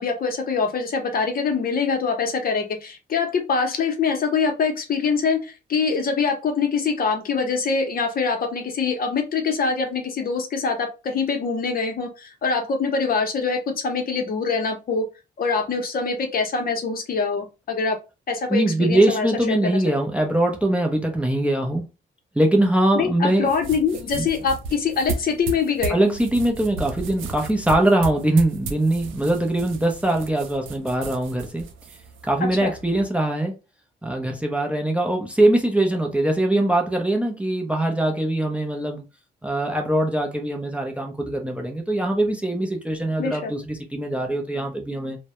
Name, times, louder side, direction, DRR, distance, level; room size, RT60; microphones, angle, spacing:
voice 1, 0.0-15.1 15.4-18.0 18.3-19.9 22.9-26.1 32.6-32.7 43.2-43.5, left 5 dB, 50° left, 0.7 m, -24 dB
voice 2, 18.5-21.8 22.3-23.5 23.9-24.3 25.9-31.7 32.2-33.5 34.0-39.0 39.4-45.2, right 1 dB, 5° right, 0.5 m, -22 dB
sound 1, 23.4-33.0, right 4 dB, 85° right, 0.5 m, -35 dB
2.2 x 2.0 x 2.9 m
cardioid pair, 90°, 20 cm